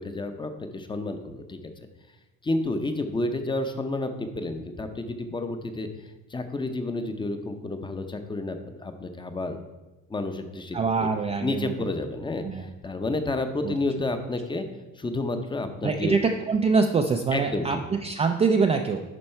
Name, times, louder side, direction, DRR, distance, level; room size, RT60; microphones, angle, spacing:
voice 1, 0.0-1.7 2.4-5.9 6.3-9.6 10.1-11.1 11.4-14.7 15.0-16.2 17.3-17.8, left 2 dB, 15° left, 7 dB, 0.7 m, -30 dB
voice 2, 10.7-11.7 12.4-12.6 13.6-13.7 15.8-19.0, right 5 dB, 20° right, 4 dB, 0.4 m, -24 dB
11.0 x 4.3 x 4.4 m, 1.1 s
cardioid pair, 115°, 34 cm